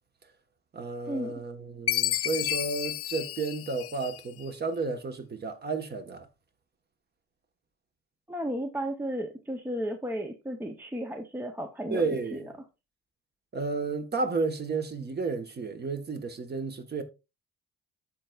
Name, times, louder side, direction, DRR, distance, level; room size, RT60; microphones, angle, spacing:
voice 1, 0.7-6.3 11.9-12.5 13.5-17.0, right 4 dB, 30° right, 1.2 m, -32 dB
Chime, 1.9-4.4, left 13 dB, 45° left, 0.4 m, -31 dB
voice 2, 8.3-12.2, equal, 5° right, 0.6 m, -33 dB
13.0 x 4.5 x 2.3 m
cardioid pair, 140°, 33 cm